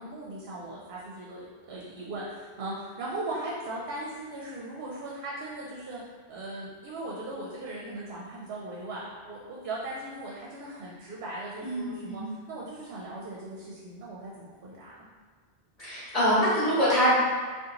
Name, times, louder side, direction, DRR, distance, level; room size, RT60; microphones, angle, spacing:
voice 1, 0.0-6.0 6.3-12.2 12.5-15.0, right 2 dB, 70° right, -4 dB, 0.8 m, -38 dB
voice 2, 11.6-12.3 15.8-17.1, equal, 35° left, -11 dB, 1.7 m, -24 dB
3.7 x 2.4 x 2.8 m, 1.5 s
omnidirectional pair, 1.1 m